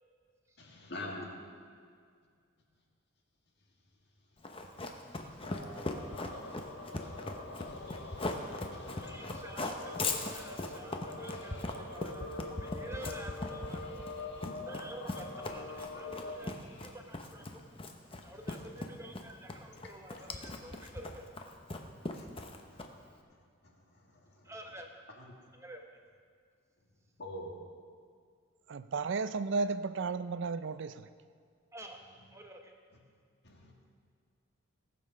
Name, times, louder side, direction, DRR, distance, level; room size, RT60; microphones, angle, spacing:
voice 1, 0.6-1.3 7.0-7.1 7.6-9.4 11.3-11.7 13.8-14.5 22.1-22.3 22.7-22.8 25.2-25.4 27.2-27.6 33.4-33.9, left 1 dB, 50° left, 0 dB, 1.7 m, -47 dB
Run, 4.4-23.1, left 2 dB, 25° left, 0.7 m, -39 dB
sound 1, 5.4-16.3, left 2 dB, 70° left, 1.2 m, -45 dB
voice 2, 8.9-13.9 14.7-17.6 18.2-21.3 24.4-24.9 25.5-25.8 31.7-32.0 32.3-32.7, right 1 dB, 15° right, 3 dB, 0.8 m, -49 dB
voice 3, 28.7-31.1, right 4 dB, 55° right, 13 dB, 0.4 m, -33 dB
18.5 x 6.9 x 5.4 m, 2.1 s
head